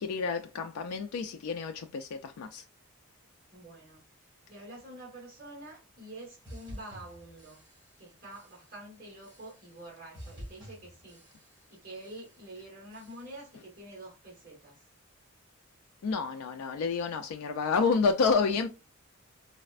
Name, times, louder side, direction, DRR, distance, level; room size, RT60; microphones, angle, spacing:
voice 1, 0.0-2.6 16.0-18.7, left 5 dB, 80° left, 0.3 m, -29 dB
voice 2, 3.5-4.0 4.5-7.6 8.0-11.2 11.7-14.7, right 1 dB, 40° right, 1.4 m, -47 dB
sound 1, 6.4-8.0 8.3-8.8 9.2-9.9 10.1-11.7 12.0-12.5 12.9-13.5, equal, 20° right, 1.9 m, -50 dB
4.0 x 2.1 x 2.4 m
head